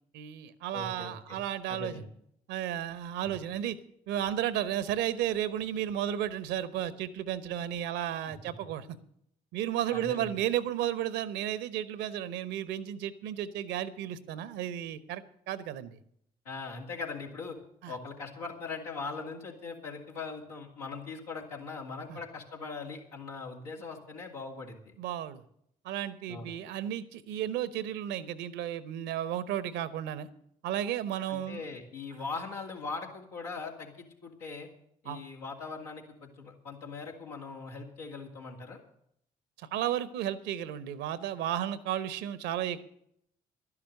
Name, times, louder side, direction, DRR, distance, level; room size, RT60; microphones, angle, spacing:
voice 1, 0.1-2.0 2.5-3.8 4.1-8.9 9.5-16.0 17.8-17.9 22.1-22.2 25.0-25.4 25.8-30.3 30.6-31.6 35.1-35.2 39.7-42.8, right 11 dB, 70° right, 16 dB, 0.9 m, -33 dB
voice 2, 0.7-1.4 1.7-2.1 3.2-3.3 9.9-10.4 16.4-17.6 17.9-24.9 26.3-26.5 31.3-34.7 35.0-38.8, left 4 dB, 85° left, -2 dB, 2.4 m, -40 dB
12.0 x 11.0 x 6.5 m, 0.71 s
hypercardioid pair, 45°, 19 cm